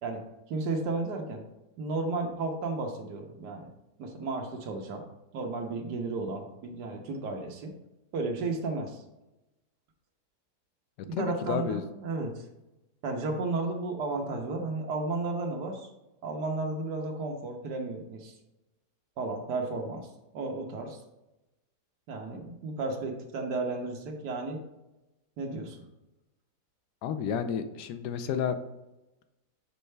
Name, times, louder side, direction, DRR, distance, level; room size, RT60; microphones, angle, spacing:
voice 1, 0.5-1.4 1.8-3.7 4.0-7.7 8.1-9.0 11.2-12.4 13.0-15.9 16.2-18.4 19.2-20.1 20.3-21.0 22.1-24.6 25.4-25.8, right 3 dB, 80° right, 2 dB, 1.5 m, -33 dB
voice 2, 11.1-11.8 27.0-28.6, left 7 dB, 85° left, 9 dB, 1.2 m, -31 dB
5.5 x 5.5 x 3.2 m, 0.96 s
omnidirectional pair, 1.7 m